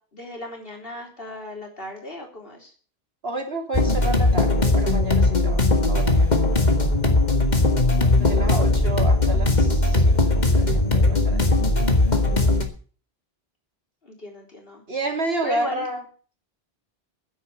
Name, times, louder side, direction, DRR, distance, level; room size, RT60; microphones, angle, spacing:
voice 1, 0.1-2.7 8.4-9.1 14.0-14.8 15.4-15.9, equal, 65° left, 1 dB, 4.0 m, -37 dB
voice 2, 3.2-6.3 8.2-11.6 14.9-16.0, right 2 dB, 75° right, 4 dB, 3.1 m, -30 dB
sound 1, 3.7-12.6, left 2 dB, 45° left, 2.1 m, -19 dB
10.0 x 8.4 x 9.5 m, 0.41 s
omnidirectional pair, 1.1 m